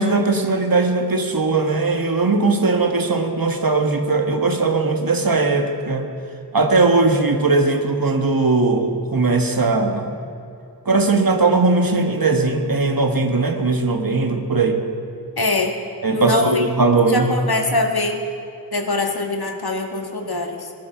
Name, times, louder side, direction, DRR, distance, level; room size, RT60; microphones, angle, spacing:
voice 1, 0.0-6.1 6.5-10.2 10.8-14.8 16.0-17.4, right 3 dB, 55° right, 5 dB, 1.5 m, -19 dB
voice 2, 15.4-15.7 16.1-16.6 17.1-18.2 18.7-20.7, left 2 dB, 65° left, 3 dB, 1.8 m, -22 dB
20.0 x 11.5 x 6.0 m, 2.6 s
wide cardioid pair, 65°, 40 cm